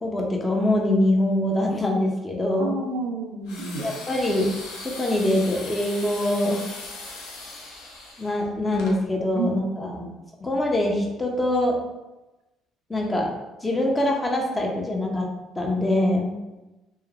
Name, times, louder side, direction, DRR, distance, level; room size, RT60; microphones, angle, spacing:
voice 1, 0.0-2.8 3.8-4.5 4.8-6.6 8.2-10.0 10.4-11.8 12.9-13.3 13.6-15.3 15.6-16.3, left 1 dB, 20° left, 0 dB, 0.6 m, -24 dB
voice 2, 2.6-3.9 9.3-9.5 9.9-10.1, right 3 dB, 80° right, 3 dB, 0.4 m, -30 dB
sound 1, 3.5-9.0, left 2 dB, 85° left, 0.5 m, -39 dB
2.9 x 2.0 x 2.4 m, 1.0 s
supercardioid pair, 85°, 0 cm